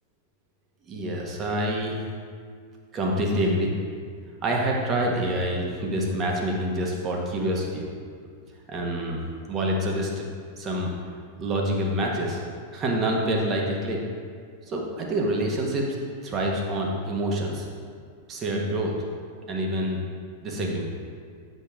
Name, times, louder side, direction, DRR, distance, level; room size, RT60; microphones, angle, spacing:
voice 1, 0.9-2.0 2.9-3.7 4.4-7.9 8.7-9.2 9.5-10.3 10.6-10.9 11.4-12.4 12.7-14.0 14.7-16.0 16.2-17.7 18.3-18.9 19.5-20.0 20.4-20.8, right 1 dB, 30° right, -1 dB, 1.4 m, -26 dB
8.3 x 5.3 x 3.7 m, 2.1 s
figure-of-eight pair, 95°, 0 cm